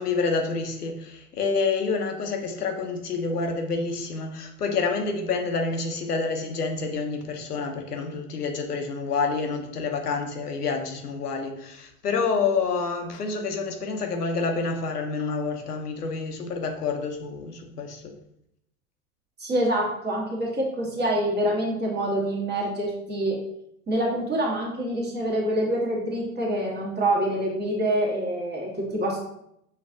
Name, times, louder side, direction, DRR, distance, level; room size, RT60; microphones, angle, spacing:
voice 1, 0.0-18.0, left 4 dB, 90° left, 4 dB, 0.7 m, -28 dB
voice 2, 19.4-23.4 23.9-29.2, right 1 dB, 20° right, -3 dB, 1.2 m, -26 dB
5.2 x 2.4 x 2.5 m, 0.76 s
figure-of-eight pair, 90°, 45 cm